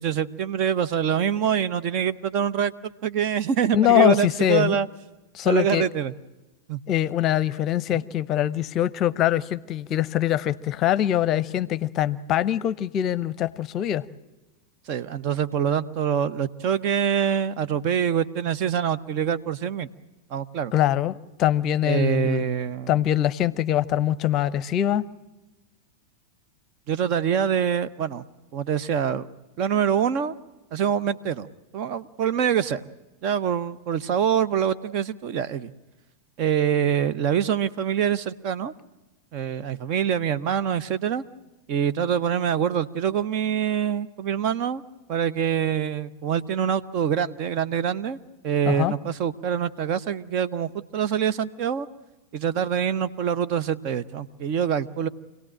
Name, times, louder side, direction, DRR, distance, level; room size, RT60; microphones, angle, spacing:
voice 1, 0.0-4.9 5.4-6.1 6.7-6.8 7.9-8.0 14.9-19.9 20.3-20.7 21.8-22.9 26.9-28.2 28.5-29.3 29.6-30.3 30.7-31.5 31.7-32.8 33.2-35.7 36.4-38.7 39.3-41.2 41.7-44.8 45.1-48.2 48.4-51.9 52.3-55.1, right 8 dB, 40° right, 14 dB, 0.8 m, -25 dB
voice 2, 3.7-4.8 5.3-5.9 6.9-14.0 20.7-22.5 22.9-25.1 48.7-48.9, left 11 dB, 35° left, 19 dB, 0.7 m, -23 dB
26.5 x 17.5 x 8.8 m, 1.1 s
figure-of-eight pair, 90°, 0 cm